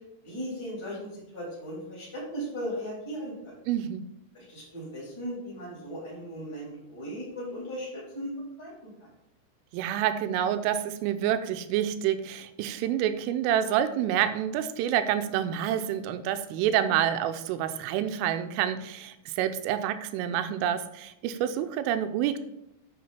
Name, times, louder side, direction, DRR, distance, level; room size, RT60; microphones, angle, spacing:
voice 1, 0.2-3.5 4.3-8.3 8.6-8.7, equal, 5° left, -8 dB, 3.2 m, -37 dB
voice 2, 3.7-4.1 9.7-22.4, right 10 dB, 85° right, 10 dB, 3.2 m, -28 dB
9.3 x 6.8 x 4.3 m, 0.84 s
omnidirectional pair, 5.7 m